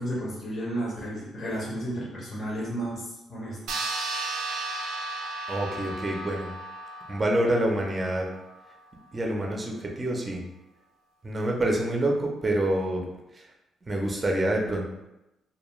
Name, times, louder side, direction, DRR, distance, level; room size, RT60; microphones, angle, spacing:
voice 1, 0.0-3.9, right 1 dB, 40° left, -6 dB, 0.7 m, -33 dB
sound 1, 3.7-8.5, right 2 dB, 85° right, 0.3 m, -35 dB
voice 2, 5.5-6.5 7.1-8.3 9.1-10.4 11.2-13.0 13.3-13.4 13.9-14.9, right 1 dB, 25° right, 0 dB, 0.5 m, -27 dB
2.3 x 2.2 x 3.0 m, 0.93 s
cardioid pair, 90°, 0 cm